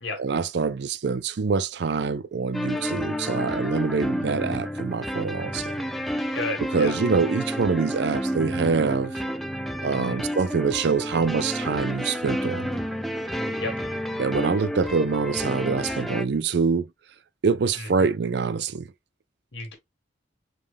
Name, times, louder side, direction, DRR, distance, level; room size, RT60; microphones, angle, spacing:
voice 1, 0.1-5.8 6.7-9.1 9.8-12.7 14.2-16.9 17.4-18.9, right 5 dB, 65° right, 0.4 m, -25 dB
sound 1, 2.5-16.2, equal, ahead, 0.3 m, -30 dB
voice 2, 6.3-7.0 10.0-10.2 13.3-13.8 17.8-17.9 19.5-19.7, left 2 dB, 80° left, 1.7 m, -33 dB
5.3 x 2.2 x 3.4 m
head